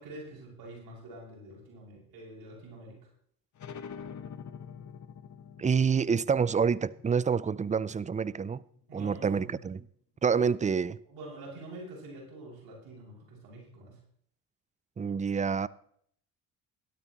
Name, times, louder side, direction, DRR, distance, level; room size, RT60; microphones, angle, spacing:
voice 1, 0.0-3.1 8.9-9.6 10.4-10.6 11.1-14.0, right 2 dB, 65° right, 6.4 m, -46 dB
sound 1, 3.6-8.8, left 7 dB, 45° left, 1.4 m, -46 dB
voice 2, 5.6-8.6 8.9-9.8 10.2-11.0 15.0-15.7, right 6 dB, 20° right, 0.5 m, -27 dB
16.5 x 12.5 x 3.1 m
hypercardioid pair, 65°, 40 cm